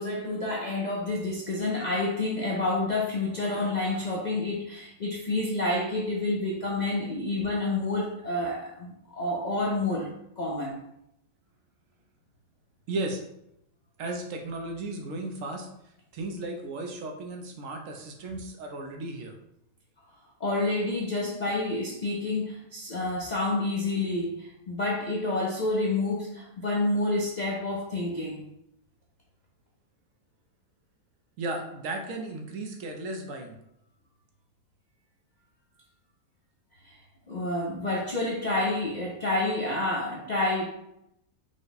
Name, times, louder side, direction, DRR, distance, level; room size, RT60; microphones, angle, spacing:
voice 1, 0.0-10.1 10.4-10.8 20.4-28.5 36.8-36.9 37.3-40.7, left 2 dB, 55° left, -2 dB, 0.5 m, -29 dB
voice 2, 12.9-13.2 14.0-15.7 16.1-19.3 21.2-21.3 31.4-33.6, right 2 dB, 70° right, 3 dB, 1.0 m, -35 dB
5.1 x 2.2 x 3.9 m, 0.80 s
omnidirectional pair, 1.5 m